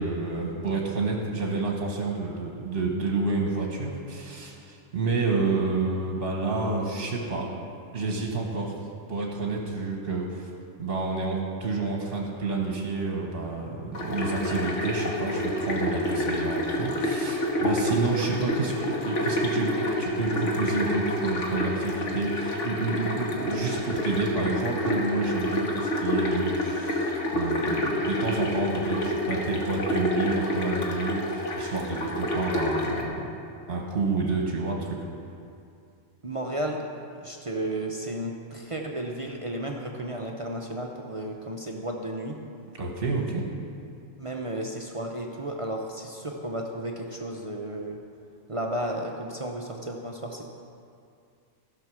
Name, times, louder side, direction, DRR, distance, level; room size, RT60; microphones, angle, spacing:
voice 1, 0.0-7.5 7.9-8.7 9.1-10.5 10.8-33.3 33.7-35.0 42.8-43.4, right 3 dB, 50° right, 0 dB, 1.3 m, -29 dB
sound 1, 13.9-33.0, left 1 dB, 70° left, 1.7 m, -28 dB
voice 2, 36.2-36.8 37.2-42.4 44.2-48.0 48.5-50.4, right 1 dB, 35° right, 1 dB, 0.6 m, -33 dB
15.0 x 5.8 x 6.2 m, 2.4 s
omnidirectional pair, 1.3 m